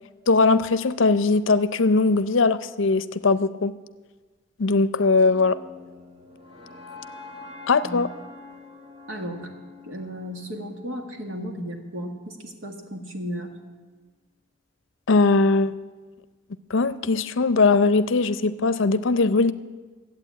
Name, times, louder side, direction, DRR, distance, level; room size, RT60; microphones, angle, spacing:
voice 1, 0.3-3.7 4.6-5.6 7.7-8.1 15.1-15.8 16.7-19.5, left 3 dB, 70° left, 13 dB, 0.6 m, -20 dB
sound 1, 5.2-11.3, left 3 dB, 30° right, 1.9 m, -45 dB
voice 2, 9.1-9.5 9.9-13.6, equal, 75° right, 2 dB, 2.0 m, -34 dB
14.0 x 8.6 x 8.6 m, 1.3 s
head